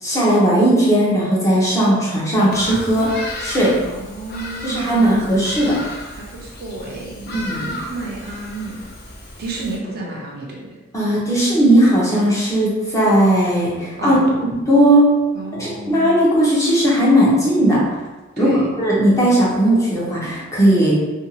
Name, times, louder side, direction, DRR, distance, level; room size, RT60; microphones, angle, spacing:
voice 1, 0.0-3.7 4.6-5.8 7.3-7.7 10.9-14.2 14.5-15.0 15.6-17.8 18.4-18.5 18.8-20.9, right 1 dB, 15° left, -7 dB, 0.7 m, -16 dB
Bird vocalization bird call bird song, 2.5-9.8, left 1 dB, 50° left, 0.4 m, -34 dB
voice 2, 3.8-5.0 6.1-7.3 7.9-8.8 9.4-10.8 14.0-14.4 15.3-16.2 18.4-18.7, right 2 dB, 50° right, -2 dB, 0.5 m, -31 dB
2.6 x 2.3 x 2.8 m, 1.1 s
head